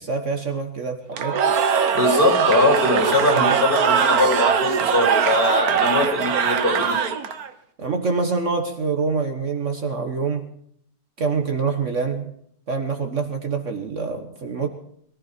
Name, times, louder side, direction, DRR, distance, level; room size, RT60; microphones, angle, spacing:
voice 1, 0.0-1.4 3.2-3.5 7.8-10.5 11.2-12.3 12.7-14.7, right 4 dB, 50° right, 5 dB, 1.6 m, -26 dB
Cheering / Crowd, 1.1-7.5, right 6 dB, 70° right, 1.5 m, -21 dB
voice 2, 1.9-7.0, left 2 dB, 35° left, 0 dB, 5.0 m, -21 dB
22.0 x 14.5 x 4.4 m, 0.68 s
omnidirectional pair, 1.7 m